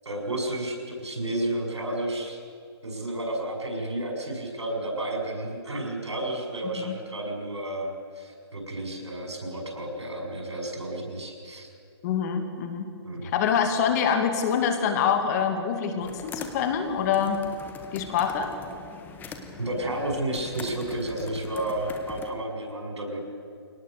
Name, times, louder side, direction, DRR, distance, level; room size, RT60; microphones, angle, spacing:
voice 1, 0.0-2.4 2.8-11.7 13.0-13.3 19.6-23.2, right 1 dB, 90° right, 2 dB, 6.4 m, -31 dB
voice 2, 12.0-12.9 13.2-17.4 17.9-18.5, left 7 dB, 35° left, 6 dB, 2.5 m, -25 dB
sound 1, 16.0-22.3, left 5 dB, 15° left, 1.5 m, -42 dB
23.0 x 18.5 x 6.9 m, 2.4 s
hypercardioid pair, 140°, 14 cm